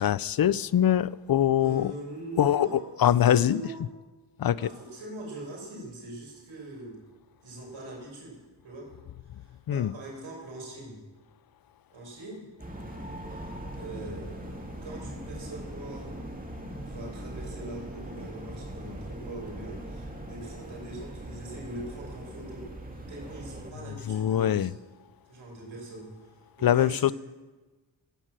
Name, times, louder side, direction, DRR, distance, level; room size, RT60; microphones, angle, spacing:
voice 1, 0.0-1.9 2.4-3.6 4.4-4.6 9.7-9.9 24.1-24.7 26.6-27.1, left 10 dB, 50° left, 20 dB, 0.5 m, -23 dB
voice 2, 1.6-3.8 4.6-7.0 7.4-8.4 8.6-8.9 9.2-11.0 11.9-12.5 13.7-16.2 16.8-22.7 23.1-24.7 25.3-27.1, right 1 dB, 85° right, -2 dB, 5.4 m, -42 dB
sound 1, 12.6-23.7, right 1 dB, 20° right, 2.5 m, -40 dB
14.5 x 8.9 x 7.5 m, 1.3 s
cardioid pair, 60°, 46 cm